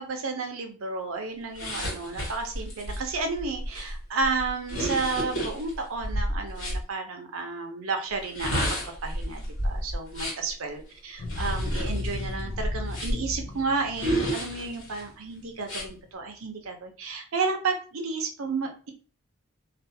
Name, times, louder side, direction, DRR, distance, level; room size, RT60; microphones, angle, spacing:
voice 1, 0.0-8.7 9.0-18.9, right 4 dB, 85° right, 4 dB, 0.6 m, -32 dB
sound 1, 1.6-6.8 8.2-10.5 11.2-13.4 14.0-15.0 15.6-15.9, equal, 80° left, 1.1 m, -31 dB
sound 2, 11.2-15.9, left 2 dB, 55° left, 0.4 m, -36 dB
2.4 x 2.4 x 2.7 m, 0.38 s
head